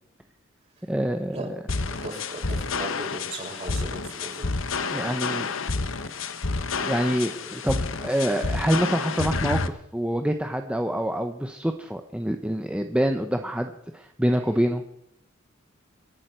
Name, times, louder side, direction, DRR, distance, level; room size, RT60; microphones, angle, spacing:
voice 1, 0.9-1.6 4.9-5.5 6.8-14.9, equal, 5° right, 5 dB, 0.8 m, -26 dB
sound 1, 1.7-9.7, left 4 dB, 70° left, 1.2 m, -29 dB
voice 2, 1.9-4.5, right 2 dB, 35° right, -2 dB, 6.8 m, -37 dB
27.5 x 11.5 x 4.5 m, 0.77 s
head